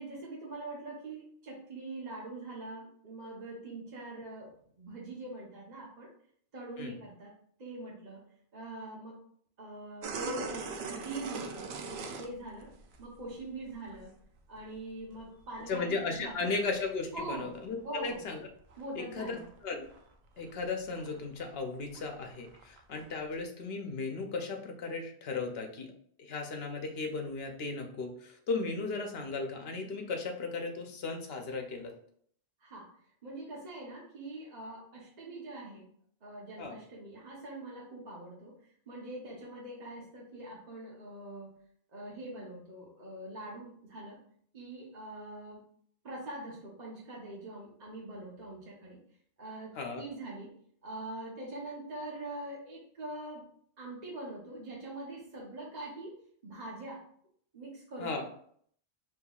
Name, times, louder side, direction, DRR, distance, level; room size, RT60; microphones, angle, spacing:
voice 1, 0.0-6.1 6.5-7.3 7.6-8.2 8.5-9.2 9.6-10.7 11.0-12.7 13.0-14.1 14.5-16.4 17.1-17.5 17.8-18.3 18.8-19.4 32.6-32.9 33.2-35.9 36.2-38.5 38.9-41.5 41.9-44.2 44.5-45.6 46.0-49.0 49.4-50.5 50.8-53.5 53.8-56.2 56.4-57.0 57.5-58.2, right 2 dB, 45° right, -4 dB, 1.0 m, -43 dB
sound 1, 10.0-13.4 13.7-14.0 14.4-16.3 16.9-17.8 18.1-19.6 19.8-20.1 20.4-23.4, right 4 dB, 80° right, 0.8 m, -42 dB
voice 2, 15.7-18.4 19.0-19.4 19.6-19.9 20.4-25.9 26.2-31.9 36.6-36.8 49.7-50.0 58.0-58.2, left 4 dB, 70° left, 3 dB, 0.9 m, -36 dB
5.6 x 3.0 x 2.3 m, 0.64 s
omnidirectional pair, 1.1 m